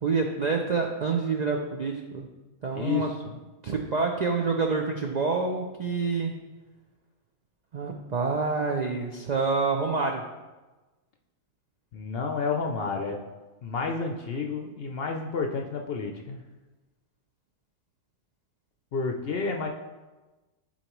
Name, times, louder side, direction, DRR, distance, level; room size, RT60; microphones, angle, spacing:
voice 1, 0.0-2.3 2.6-3.1 3.6-6.3 7.7-10.2, right 4 dB, 60° right, 1 dB, 0.4 m, -27 dB
voice 2, 2.8-3.3 11.9-13.2 13.6-16.4 18.9-19.7, left 4 dB, 60° left, 3 dB, 0.7 m, -30 dB
11.5 x 4.3 x 3.0 m, 1.2 s
omnidirectional pair, 1.4 m